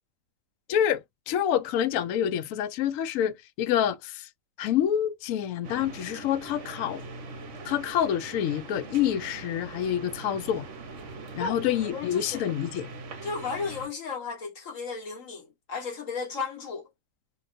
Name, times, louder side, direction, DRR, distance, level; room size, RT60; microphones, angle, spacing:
voice 1, 0.7-1.0 1.3-4.3 4.6-7.0 7.6-10.7 11.4-12.9, left 10 dB, 90° left, 0.7 m, -27 dB
sound 1, 5.6-13.9, right 3 dB, 55° right, 0.9 m, -42 dB
voice 2, 11.9-12.4 13.2-16.9, left 4 dB, 50° left, 1.5 m, -34 dB
2.9 x 2.9 x 2.6 m
omnidirectional pair, 2.0 m